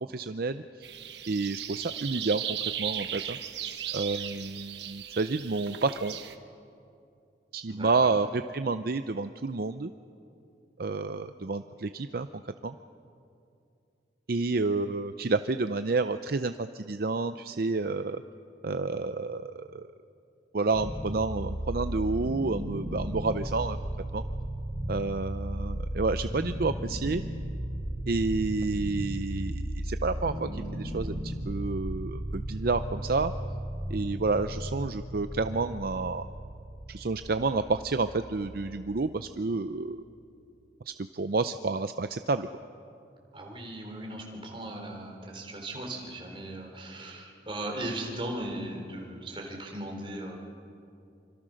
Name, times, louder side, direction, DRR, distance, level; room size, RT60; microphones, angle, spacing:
voice 1, 0.1-0.9 1.3-3.7 3.9-6.2 7.5-9.9 10.8-12.3 12.6-12.8 14.3-18.2 18.6-19.9 20.5-23.8 24.1-24.2 24.9-27.2 28.1-33.3 33.9-36.3 36.9-40.0 41.1-42.5, right 3 dB, 55° right, 10 dB, 0.6 m, -30 dB
sound 1, 0.8-6.3, right 10 dB, 70° right, 1.3 m, -37 dB
voice 2, 7.7-8.1 43.3-50.4, right 1 dB, 30° right, 1 dB, 3.9 m, -38 dB
sound 2, 20.7-39.7, right 1 dB, ahead, 4.6 m, -35 dB
26.5 x 25.5 x 6.4 m, 2.6 s
head